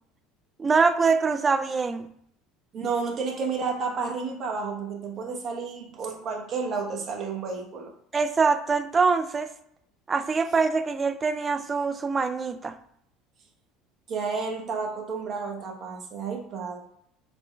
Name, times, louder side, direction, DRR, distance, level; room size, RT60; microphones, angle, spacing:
voice 1, 0.6-2.1 8.1-9.5 10.1-12.7, right 4 dB, 25° right, 0.3 m, -24 dB
voice 2, 2.7-7.9 14.1-16.8, right 4 dB, 45° right, 0.9 m, -31 dB
4.2 x 2.2 x 3.1 m
hypercardioid pair, 75°, 0 cm